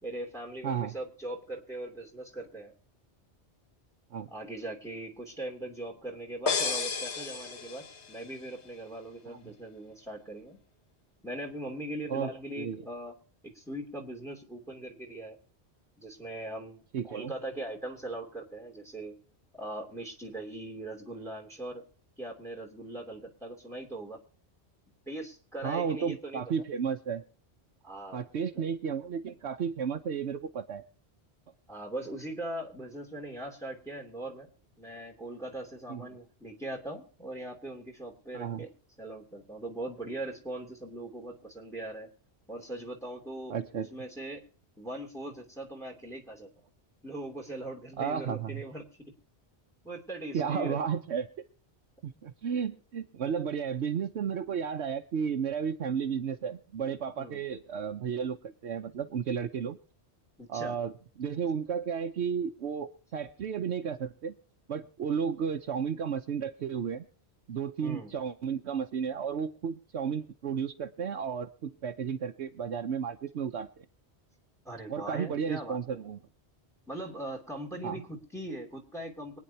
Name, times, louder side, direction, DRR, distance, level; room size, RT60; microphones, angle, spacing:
voice 1, 0.0-2.7 4.3-10.6 11.2-13.1 13.5-15.4 16.0-19.1 19.5-21.8 22.2-24.2 25.1-26.5 27.8-28.2 28.6-28.7 31.7-34.5 34.8-38.7 39.0-42.1 42.5-44.4 44.8-46.5 47.0-48.9 49.8-50.8 57.2-57.4 60.4-60.8 67.8-68.1 74.6-75.8 76.9-79.4, right 1 dB, 5° left, 3 dB, 2.7 m, -40 dB
voice 2, 0.6-0.9 4.1-4.3 9.3-9.4 12.1-12.3 12.6-12.8 16.9-17.3 25.6-27.2 28.1-30.8 35.9-36.0 38.3-38.6 43.5-43.9 48.0-48.6 50.3-51.3 52.0-59.8 60.5-60.9 61.2-64.3 64.7-67.1 67.5-73.8 74.9-76.2 77.8-78.0, right 7 dB, 80° right, 3 dB, 1.1 m, -33 dB
sound 1, 6.5-8.3, left 5 dB, 75° left, 1.5 m, -32 dB
24.5 x 9.5 x 2.8 m, 0.43 s
omnidirectional pair, 1.1 m